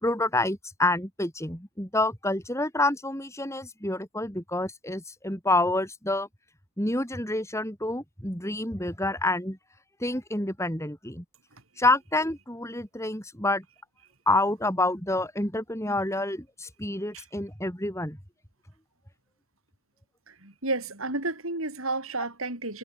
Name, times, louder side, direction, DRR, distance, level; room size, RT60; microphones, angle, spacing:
voice 1, 0.0-6.3 6.8-9.6 10.0-11.2 11.8-13.6 14.3-18.2, left 2 dB, 10° left, 6.2 m, -28 dB
voice 2, 20.3-22.8, right 2 dB, 65° right, 6.7 m, -31 dB
head